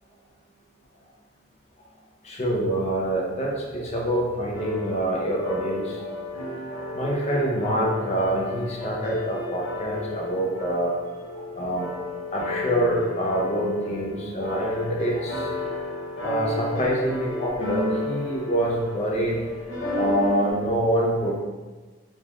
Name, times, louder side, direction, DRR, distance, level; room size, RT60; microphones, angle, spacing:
voice 1, 2.2-6.0 6.9-11.0 11.4-11.9 12.3-15.5 16.2-19.4 20.0-21.4, right 1 dB, 35° left, -2 dB, 0.6 m, -26 dB
sound 1, 4.5-20.5, left 2 dB, 90° left, 1.3 m, -33 dB
3.7 x 3.0 x 2.4 m, 1.3 s
head